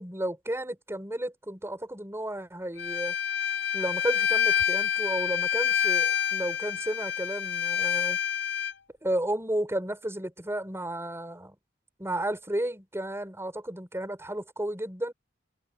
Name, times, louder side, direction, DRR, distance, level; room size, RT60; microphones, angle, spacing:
voice 1, 0.0-3.2 3.7-8.2 9.0-11.6 12.0-15.1, right 1 dB, 15° right, 5.7 m, -33 dB
Bowed string instrument, 2.8-8.7, left 8 dB, 70° left, 5.0 m, -27 dB
head